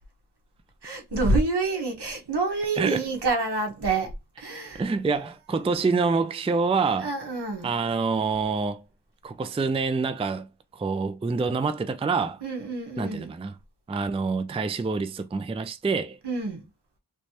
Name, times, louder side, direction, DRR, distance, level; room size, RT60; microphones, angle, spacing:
voice 1, 0.8-4.1 4.4-4.8 7.0-7.8 12.4-13.3 16.2-16.7, right 3 dB, 80° right, 1.3 m, -27 dB
voice 2, 4.7-7.1 7.6-8.8 9.2-10.5 10.7-12.4 13.0-13.5 13.9-16.2, right 4 dB, 15° right, 0.4 m, -26 dB
3.2 x 3.2 x 2.9 m
wide cardioid pair, 55°, 40 cm